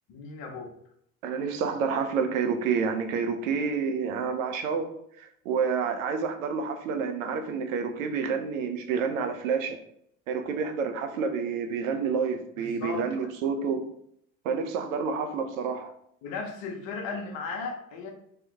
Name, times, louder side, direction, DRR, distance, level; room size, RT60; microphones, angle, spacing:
voice 1, 0.1-0.7 12.6-13.3 16.2-18.1, left 4 dB, 60° left, 2 dB, 1.0 m, -36 dB
voice 2, 1.2-4.9 5.2-9.8 10.3-13.9 14.4-15.9, right 5 dB, 75° right, 6 dB, 0.6 m, -29 dB
3.3 x 3.0 x 3.5 m, 0.71 s
hypercardioid pair, 65°, 41 cm